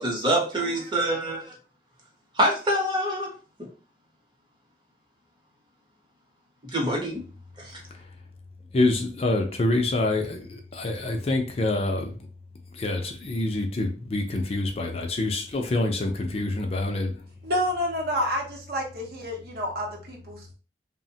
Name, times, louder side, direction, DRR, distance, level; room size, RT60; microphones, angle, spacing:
voice 1, 0.0-1.5 2.4-3.3 3.6-3.7 6.6-7.2 7.6-7.8, right 1 dB, 25° right, 0.8 m, -25 dB
voice 2, 8.7-12.2 12.7-17.1, left 2 dB, 35° left, 0.4 m, -26 dB
voice 3, 17.4-20.5, equal, 60° right, 0.7 m, -29 dB
2.9 x 2.1 x 2.7 m
head